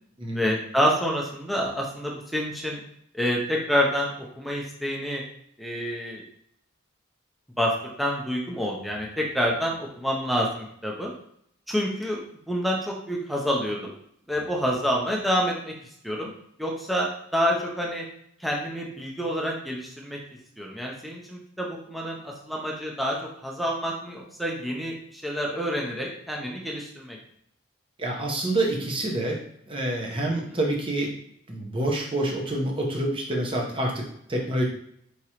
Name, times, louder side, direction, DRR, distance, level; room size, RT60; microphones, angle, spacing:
voice 1, 0.3-2.8 3.1-5.2 5.6-6.2 7.6-7.7 8.0-11.1 11.7-12.2 12.5-13.9 14.3-15.7 16.0-16.3 16.6-18.0 18.4-20.2 20.6-23.2 23.4-27.2, equal, ahead, -2 dB, 0.6 m, -28 dB
voice 2, 28.0-29.4 29.7-31.1 31.5-34.6, right 1 dB, 25° right, -1 dB, 0.8 m, -27 dB
4.9 x 3.0 x 2.9 m, 0.69 s
head